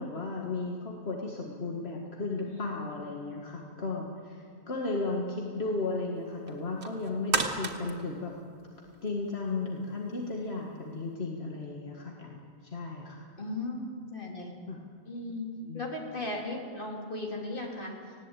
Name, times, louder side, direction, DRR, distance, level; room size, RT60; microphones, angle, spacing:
voice 1, 0.0-8.3 9.0-13.3 14.7-14.8 15.6-15.9, left 3 dB, 75° left, -1 dB, 2.0 m, -35 dB
sound 1, 6.5-9.2 9.7-9.8, right 3 dB, 85° right, 1.9 m, -33 dB
voice 2, 13.4-14.5 15.1-18.1, left 2 dB, 55° left, 0 dB, 3.3 m, -37 dB
19.0 x 16.0 x 9.0 m, 2.2 s
omnidirectional pair, 1.1 m